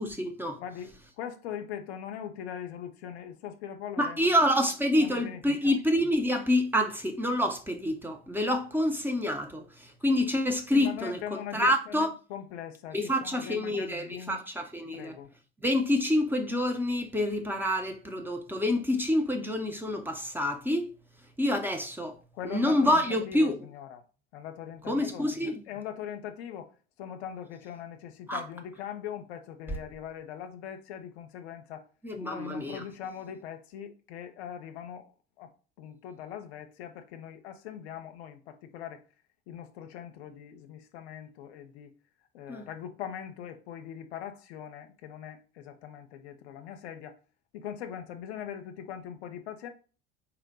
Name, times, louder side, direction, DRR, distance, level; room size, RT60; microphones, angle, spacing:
voice 1, 0.0-0.6 4.0-11.2 11.5-12.1 12.9-15.2 15.6-20.9 21.4-22.2 22.5-23.5 24.9-25.6 28.3-28.4 32.0-32.8 42.5-42.6, left 1 dB, 5° right, 0.6 m, -27 dB
voice 2, 0.6-4.4 5.0-5.8 10.7-14.4 14.9-15.3 22.3-24.0 24.3-31.9 32.2-35.1 35.4-39.0 39.5-41.9 42.3-47.2 47.5-49.7, left 9 dB, 70° left, 0.6 m, -41 dB
4.3 x 2.1 x 3.9 m
figure-of-eight pair, 65°, 33 cm